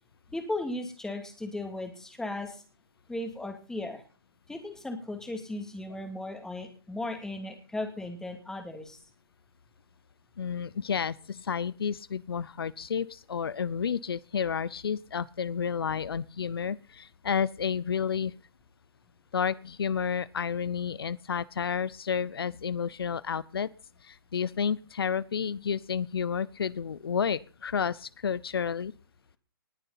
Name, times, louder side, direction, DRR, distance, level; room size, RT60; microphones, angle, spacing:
voice 1, 0.3-2.6 3.1-4.0 4.5-9.0, left 2 dB, 5° left, 5 dB, 2.5 m, -36 dB
voice 2, 10.4-18.3 19.3-23.7 24.0-28.9, left 7 dB, 80° left, 21 dB, 0.6 m, -31 dB
19.5 x 6.9 x 5.7 m, 0.38 s
hypercardioid pair, 140°, 12 cm